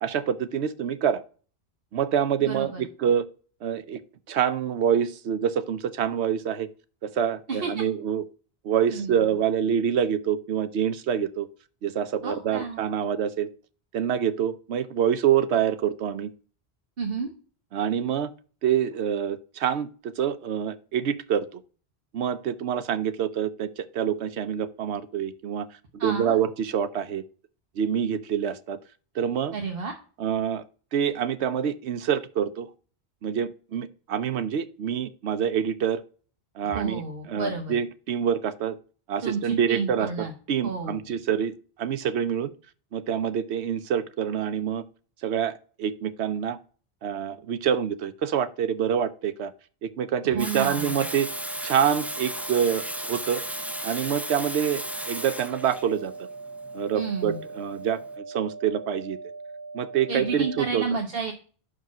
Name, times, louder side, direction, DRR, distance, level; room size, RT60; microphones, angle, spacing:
voice 1, 0.0-1.2 1.9-3.2 3.6-4.0 4.3-6.7 7.0-8.2 8.6-11.5 11.8-13.5 13.9-16.3 17.7-18.3 18.6-21.6 22.1-25.7 25.9-27.2 27.8-28.8 29.1-29.5 30.2-30.6 30.9-32.7 33.2-36.0 36.6-38.8 39.1-42.5 42.9-44.8 45.2-46.6 47.0-49.5 49.8-51.3 51.6-53.4 53.8-56.1 56.7-59.2 59.7-60.8, right 8 dB, 85° right, 1.0 m, -26 dB
voice 2, 2.4-2.8 7.5-7.8 8.9-9.3 12.2-12.8 17.0-17.3 26.0-26.4 29.5-29.9 36.7-37.8 39.2-40.3 40.6-41.0 50.3-51.0 56.9-57.4 60.1-61.3, right 5 dB, 60° right, 1.3 m, -31 dB
Water tap faucet / Sink (filling or washing), 50.4-58.0, equal, ahead, 0.4 m, -35 dB
sound 1, 50.6-60.6, right 4 dB, 40° left, 1.8 m, -41 dB
5.9 x 5.0 x 6.0 m
omnidirectional pair, 1.1 m